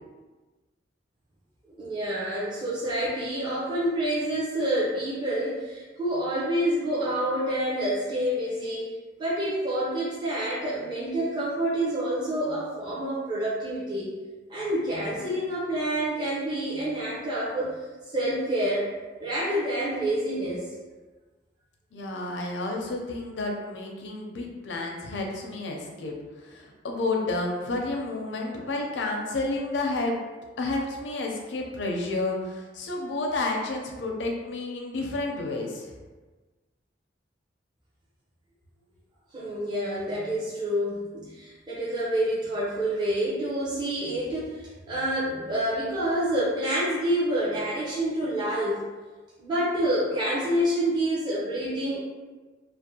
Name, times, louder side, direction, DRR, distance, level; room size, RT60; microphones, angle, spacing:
voice 1, 1.8-8.9 9.2-14.1 14.5-17.8 18.1-18.9 19.2-20.6 39.3-44.5 44.9-48.8 49.4-52.0, right 1 dB, 25° right, -9 dB, 0.5 m, -28 dB
voice 2, 21.9-30.2 30.6-35.9, left 2 dB, 75° left, 1 dB, 0.5 m, -30 dB
2.5 x 2.1 x 2.7 m, 1.3 s
head